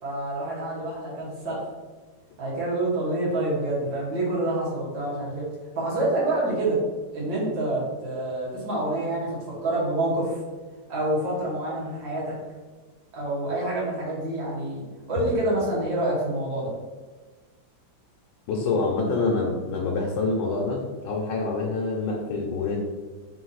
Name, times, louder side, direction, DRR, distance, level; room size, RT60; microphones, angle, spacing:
voice 1, 0.0-1.7 2.4-5.5 5.8-6.8 7.1-9.4 9.6-10.4 10.9-12.3 13.1-16.7, right 2 dB, 75° right, -6 dB, 2.0 m, -27 dB
voice 2, 18.5-22.8, left 3 dB, 80° left, -2 dB, 1.4 m, -26 dB
4.1 x 2.7 x 4.0 m, 1.3 s
omnidirectional pair, 2.1 m